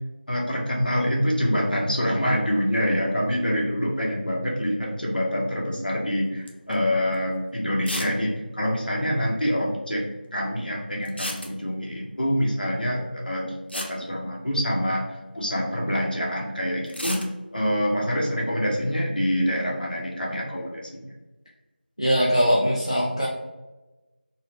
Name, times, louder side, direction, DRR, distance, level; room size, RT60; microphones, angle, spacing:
voice 1, 0.3-10.0 10.3-17.3 17.5-21.0, equal, 55° left, -3 dB, 0.9 m, -26 dB
sound 1, 6.5-6.8 7.1-7.2 7.8-8.2 8.4-8.5 8.7-8.8 11.1-11.9 13.3-13.4 13.7-14.9 16.9-17.3, left 1 dB, 90° left, 0.7 m, -33 dB
voice 2, 22.0-23.3, equal, 30° left, -4 dB, 0.3 m, -21 dB
3.9 x 2.1 x 2.7 m, 1.1 s
figure-of-eight pair, 175°, 6 cm